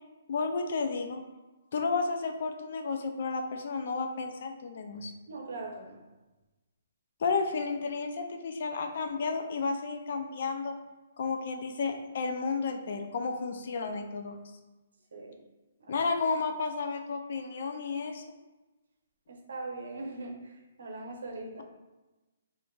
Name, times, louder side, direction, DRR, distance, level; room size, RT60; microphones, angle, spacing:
voice 1, 0.3-1.2 1.7-5.1 7.2-10.8 11.2-14.4 15.9-18.2, left 4 dB, 50° left, 5 dB, 0.3 m, -32 dB
voice 2, 5.3-6.0 15.1-15.4 19.3-21.6, right 2 dB, 80° right, 1 dB, 0.7 m, -40 dB
3.6 x 2.5 x 2.3 m, 1.1 s
hypercardioid pair, 175°, 0 cm